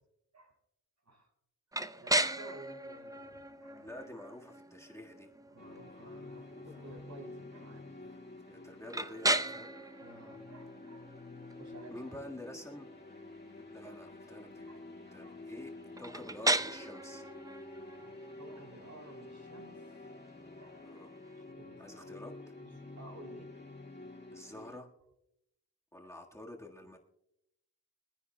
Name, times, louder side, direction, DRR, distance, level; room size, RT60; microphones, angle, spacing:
sound 1, 1.7-21.5, right 2 dB, 10° right, 0.6 m, -38 dB
voice 1, 1.9-4.0 5.5-7.9 10.0-11.1 11.6-11.9 13.8-14.0 14.6-14.8 15.2-15.4 18.4-19.8 20.6-20.9 21.5-22.1 22.6-23.5 26.0-26.1, right 1 dB, 50° right, 4 dB, 3.4 m, -53 dB
voice 2, 3.8-5.3 6.5-7.0 8.5-9.9 11.9-12.9 13.7-14.7 15.1-15.7 16.0-17.2 20.8-21.1 21.8-22.3 24.3-24.9 25.9-27.0, left 1 dB, 10° left, 0 dB, 1.7 m, -48 dB
sound 2, 5.6-24.8, left 2 dB, 30° left, 2.2 m, -50 dB
24.5 x 9.8 x 2.3 m, 0.81 s
cardioid pair, 50°, 36 cm